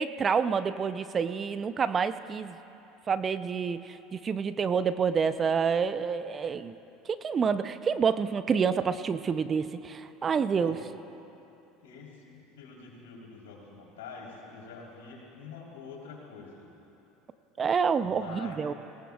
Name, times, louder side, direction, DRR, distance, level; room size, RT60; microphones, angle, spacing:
voice 1, 0.0-2.6 3.1-3.8 4.1-6.7 7.2-10.8 17.6-18.7, right 6 dB, 35° right, 12 dB, 0.5 m, -28 dB
voice 2, 11.8-16.7 18.0-18.6, left 5 dB, 85° left, -3 dB, 3.6 m, -46 dB
21.5 x 18.0 x 2.4 m, 2.9 s
hypercardioid pair, 85°, 0 cm